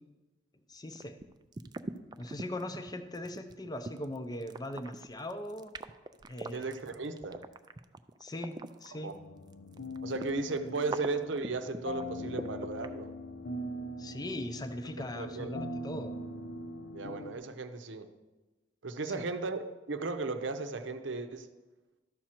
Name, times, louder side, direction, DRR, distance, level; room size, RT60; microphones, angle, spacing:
voice 1, 0.7-1.2 2.2-5.7 6.3-6.8 8.2-9.1 14.0-16.1 19.2-19.3, left 1 dB, 20° left, 8 dB, 0.6 m, -40 dB
sound 1, 0.9-9.1 9.5-12.9, right 3 dB, 20° right, 0.3 m, -42 dB
voice 2, 6.5-7.4 9.0-9.1 10.0-13.1 15.0-15.6 16.9-18.1 18.8-19.6 19.9-21.5, right 3 dB, 75° right, 8 dB, 0.7 m, -35 dB
sound 2, 9.1-17.4, left 1 dB, 65° left, 0.7 m, -41 dB
12.5 x 6.2 x 4.4 m, 1.1 s
head